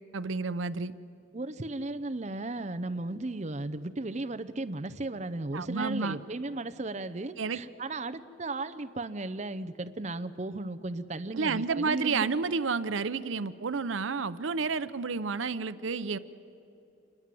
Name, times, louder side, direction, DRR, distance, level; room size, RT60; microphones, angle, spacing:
voice 1, 0.1-0.9 5.5-6.2 7.4-7.6 11.4-16.2, right 4 dB, 80° right, 14 dB, 0.7 m, -30 dB
voice 2, 1.3-12.4, right 2 dB, 35° right, 10 dB, 0.6 m, -35 dB
27.5 x 20.5 x 7.7 m, 2.9 s
head